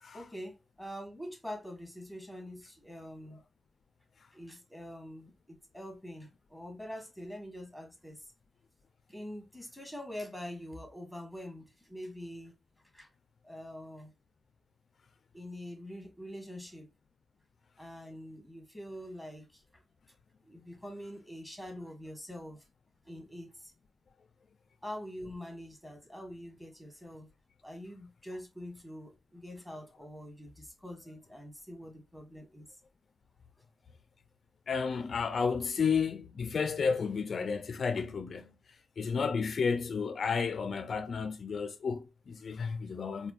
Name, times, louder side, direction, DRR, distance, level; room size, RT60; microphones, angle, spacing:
voice 1, 0.1-3.4 4.3-8.2 9.1-12.5 12.9-13.1 13.4-14.1 15.3-16.9 17.8-19.6 20.4-22.6 23.0-23.7 24.8-27.3 27.6-32.7 42.7-42.8 43.1-43.2, equal, 5° right, 1.2 m, -45 dB
voice 2, 34.7-38.5 39.0-43.3, left 5 dB, 60° left, 0.3 m, -32 dB
4.2 x 2.1 x 2.3 m
wide cardioid pair, 100°, 0 cm